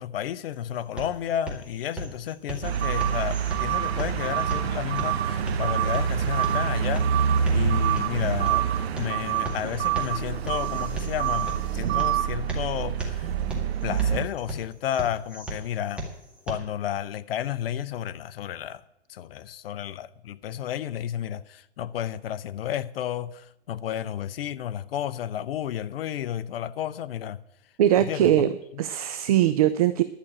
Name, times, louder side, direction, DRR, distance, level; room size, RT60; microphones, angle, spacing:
voice 1, 0.0-8.7 8.9-13.3 13.8-16.1 16.5-18.8 19.1-27.4 28.0-28.4 28.7-28.8, left 10 dB, 55° left, 0.7 m, -32 dB
sound 1, 0.5-16.5, right 1 dB, 5° right, 2.0 m, -38 dB
sound 2, 2.6-14.2, right 8 dB, 60° right, 1.1 m, -26 dB
voice 2, 27.8-30.0, right 11 dB, 35° right, 0.5 m, -21 dB
11.5 x 6.1 x 8.6 m
hypercardioid pair, 145°, 35 cm